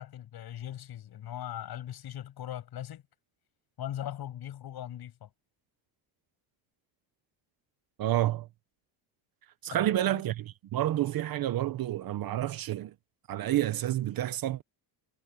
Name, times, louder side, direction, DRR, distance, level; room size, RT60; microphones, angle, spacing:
voice 1, 0.0-3.0 3.8-5.3 9.7-10.2, left 11 dB, 55° left, 7.4 m, -40 dB
voice 2, 8.0-8.5 9.6-12.9 13.3-14.6, right 13 dB, 50° right, 1.0 m, -29 dB
cardioid pair, 145°, 46 cm